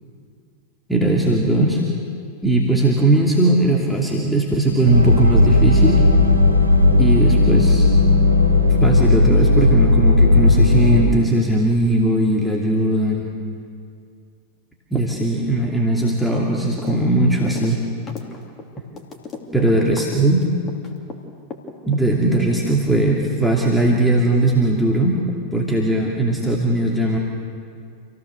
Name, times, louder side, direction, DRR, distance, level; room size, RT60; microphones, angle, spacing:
voice 1, 0.9-1.8 2.4-6.1 7.0-7.9 8.8-13.3 14.9-17.8 19.5-20.5 21.8-25.2 25.5-27.2, right 1 dB, ahead, -4 dB, 2.6 m, -19 dB
sound 1, 4.8-11.0, left 2 dB, 90° left, 2.9 m, -15 dB
sound 2, 16.8-17.1 17.3-21.2 21.5-22.4, left 5 dB, 25° left, 3.0 m, -35 dB
27.5 x 16.5 x 6.9 m, 2.3 s
figure-of-eight pair, 90°, 0 cm